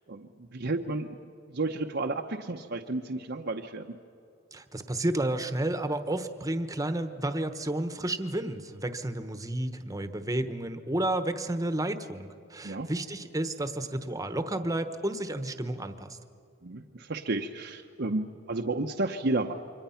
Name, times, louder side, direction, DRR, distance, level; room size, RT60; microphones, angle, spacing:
voice 1, 0.1-1.2 1.5-4.0 12.6-12.9 16.6-19.5, right 2 dB, 60° right, 3 dB, 0.9 m, -32 dB
voice 2, 4.5-16.2, right 1 dB, 20° right, 9 dB, 1.2 m, -31 dB
28.0 x 24.5 x 5.8 m, 2.7 s
head